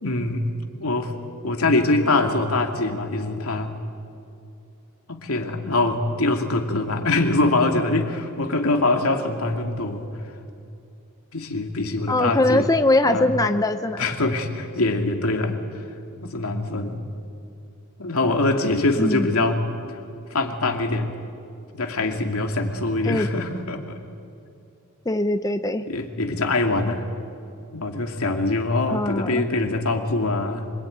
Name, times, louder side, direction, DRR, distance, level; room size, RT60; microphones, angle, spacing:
voice 1, 0.0-0.5 0.8-1.1 1.4-3.8 5.1-10.1 11.3-12.7 13.0-13.3 14.0-15.6 16.2-17.0 18.0-19.6 19.9-20.0 20.3-21.2 21.7-24.0 25.9-27.1 27.7-30.7, left 2 dB, 75° left, 4 dB, 2.6 m, -23 dB
voice 2, 12.1-14.0 19.0-19.3 23.0-23.3 25.1-25.9 28.9-29.5, left 2 dB, 15° left, 9 dB, 0.7 m, -21 dB
25.5 x 24.5 x 9.4 m, 2.6 s
head